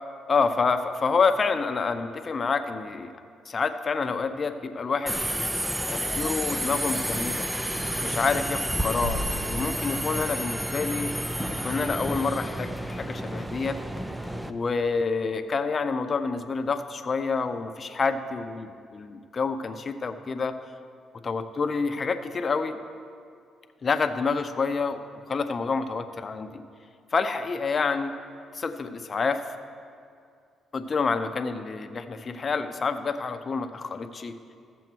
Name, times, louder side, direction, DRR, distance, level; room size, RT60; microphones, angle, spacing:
voice 1, 0.3-3.1 3.5-5.2 5.9-7.5 8.0-11.1 11.6-13.8 14.5-20.5 21.2-22.8 23.8-25.0 25.3-26.6 27.1-28.1 28.5-29.4 30.7-34.3, left 4 dB, 40° left, 8 dB, 0.7 m, -28 dB
Subway metro underground, 5.1-14.5, right 1 dB, 5° right, 0.6 m, -30 dB
sound 1, 9.0-10.8, right 1 dB, 65° right, 1.3 m, -37 dB
15.0 x 7.1 x 4.6 m, 2.3 s
cardioid pair, 90°, 0 cm